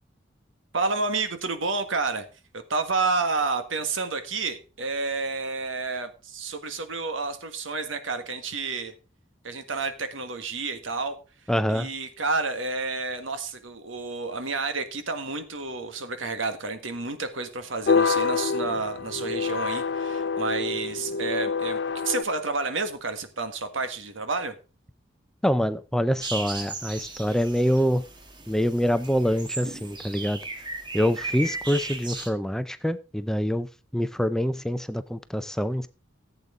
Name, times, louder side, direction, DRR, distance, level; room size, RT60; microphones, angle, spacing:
voice 1, 0.7-2.3 2.5-8.9 9.4-11.2 11.7-21.8 22.0-24.5, right 3 dB, 85° right, 9 dB, 1.6 m, -30 dB
voice 2, 11.5-11.9 25.4-28.0 28.5-30.4 30.9-33.7 33.9-35.9, equal, 5° left, 12 dB, 0.4 m, -25 dB
sound 1, 17.9-22.2, left 5 dB, 60° left, 0.5 m, -26 dB
sound 2, 26.2-32.3, right 3 dB, 25° right, 1.5 m, -36 dB
14.5 x 8.1 x 3.7 m, 0.33 s
head